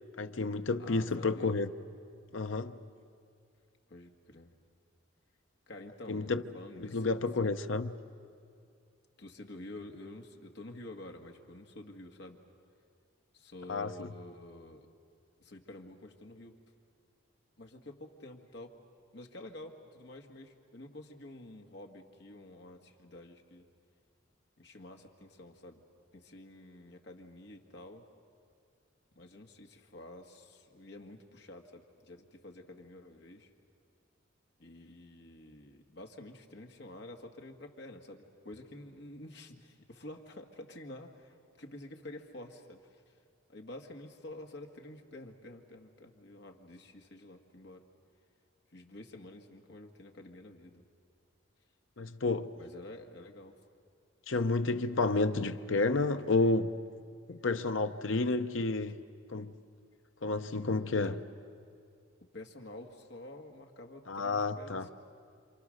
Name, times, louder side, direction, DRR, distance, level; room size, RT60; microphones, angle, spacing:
voice 1, 0.2-1.7 2.3-2.8 6.1-6.4 6.9-7.9 13.7-14.1 52.0-52.5 54.3-56.7 57.3-59.0 59.3-59.5 60.2-61.1 64.1-64.9, left 3 dB, 80° left, 0.8 m, -30 dB
voice 2, 0.8-1.5 3.9-4.5 5.7-7.7 9.2-12.4 13.3-14.9 15.4-16.6 17.6-18.8 19.1-23.7 24.6-25.8 26.1-28.1 29.2-33.5 34.6-43.2 43.5-47.9 48.7-50.8 52.6-53.6 60.9-61.2 62.2-64.9, left 1 dB, 60° left, 1.9 m, -49 dB
28.5 x 26.5 x 6.5 m
head